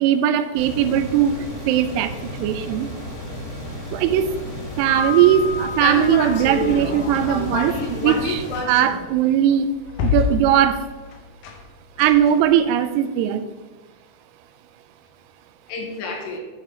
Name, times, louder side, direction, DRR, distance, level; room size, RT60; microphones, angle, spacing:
voice 1, 0.0-1.3 1.7-2.1 2.4-2.9 3.9-4.3 4.8-7.7 8.0-8.4 8.7-9.7 10.0-10.8 12.0-13.5, right 10 dB, 85° right, 11 dB, 2.6 m, -19 dB
sound 1, 0.5-8.6, left 1 dB, 30° left, 2.5 m, -33 dB
Piano, 4.9-7.8, left 4 dB, 45° right, 1.5 m, -32 dB
voice 2, 5.8-9.0 15.7-16.4, left 3 dB, 90° left, 1 dB, 3.6 m, -28 dB
sound 2, 7.1-12.6, left 7 dB, 70° left, 2.0 m, -30 dB
10.0 x 5.6 x 5.0 m, 1.3 s
omnidirectional pair, 4.7 m